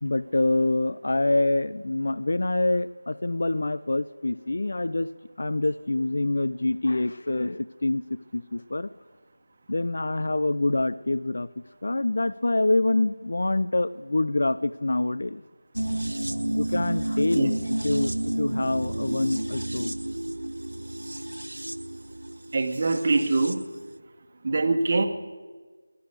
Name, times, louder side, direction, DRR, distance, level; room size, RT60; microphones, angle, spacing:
voice 1, 0.0-5.1 5.4-8.0 8.3-8.9 9.7-15.4 16.6-17.5 17.8-19.9, left 2 dB, 60° left, 16 dB, 0.4 m, -26 dB
sound 1, 15.8-23.7 23.9-24.0, right 1 dB, 90° right, 0.7 m, -31 dB
voice 2, 22.5-23.7 24.4-25.1, right 3 dB, 35° right, 7 dB, 1.2 m, -23 dB
15.0 x 10.5 x 7.9 m, 1.4 s
figure-of-eight pair, 170°, 0 cm